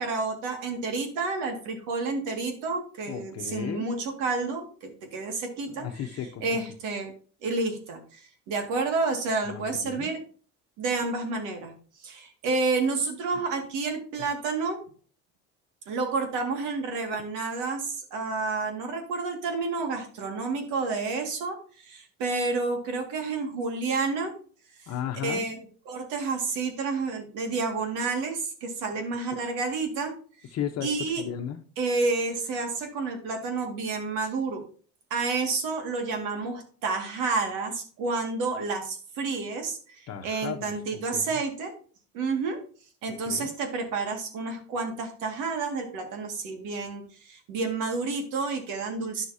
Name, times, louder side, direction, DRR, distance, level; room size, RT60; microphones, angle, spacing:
voice 1, 0.0-6.0 6.4-7.1 7.4-10.2 10.8-11.7 12.0-14.8 15.9-24.3 25.2-30.1 30.8-31.2 31.8-34.6 35.1-41.7 42.1-42.6 43.0-49.3, right 3 dB, 75° right, 4 dB, 2.2 m, -30 dB
voice 2, 3.1-3.9 5.8-6.6 9.5-10.1 24.9-25.4 30.5-30.9 31.2-31.6 40.1-40.7 41.1-41.4 43.3-43.5, left 9 dB, 55° left, 4 dB, 1.0 m, -34 dB
10.0 x 6.5 x 2.8 m, 0.42 s
supercardioid pair, 95°, 31 cm